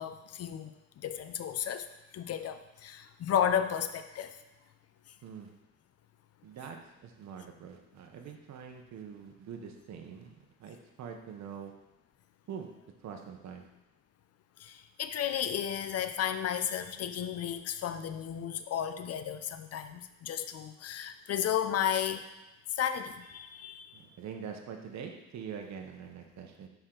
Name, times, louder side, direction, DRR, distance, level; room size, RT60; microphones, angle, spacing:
voice 1, 0.0-1.9 2.1-4.4 14.6-22.3 22.7-24.0, left 9 dB, 45° left, 10 dB, 0.5 m, -33 dB
voice 2, 6.4-10.3 10.6-11.7 12.5-12.7 13.0-13.7 23.9-26.7, right 7 dB, 55° right, 3 dB, 0.9 m, -44 dB
6.5 x 4.5 x 3.8 m, 0.95 s
cardioid pair, 90°, 34 cm